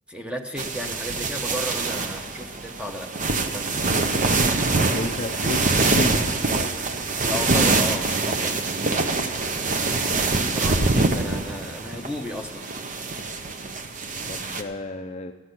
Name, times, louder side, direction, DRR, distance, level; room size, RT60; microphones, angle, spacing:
voice 1, 0.1-3.1 3.5-3.9 7.2-9.5 10.3-12.6, equal, 5° right, 4 dB, 0.9 m, -34 dB
sound 1, 0.6-14.6, right 3 dB, 40° right, 0.7 m, -24 dB
voice 2, 4.8-6.3 10.6-10.9 14.3-15.3, left 2 dB, 30° left, 5 dB, 0.5 m, -33 dB
14.0 x 6.1 x 9.6 m, 1.3 s
head